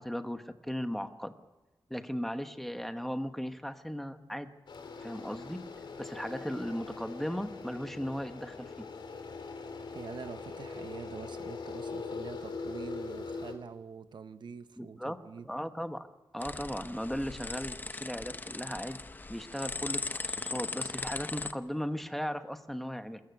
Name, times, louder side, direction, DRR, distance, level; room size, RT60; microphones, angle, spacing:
voice 1, 0.0-1.3 1.9-4.5 5.0-5.6 6.0-8.9 14.8-15.2 15.4-16.1 16.3-19.0 19.3-23.2, equal, 5° left, 8 dB, 1.1 m, -37 dB
sound 1, 4.7-13.5, left 4 dB, 70° left, 3.6 m, -42 dB
voice 2, 9.9-15.5, right 6 dB, 65° right, 11 dB, 0.8 m, -45 dB
sound 2, 16.4-21.5, left 3 dB, 20° left, 0.8 m, -38 dB
27.0 x 14.0 x 9.4 m, 1.1 s
wide cardioid pair, 160°, 8 cm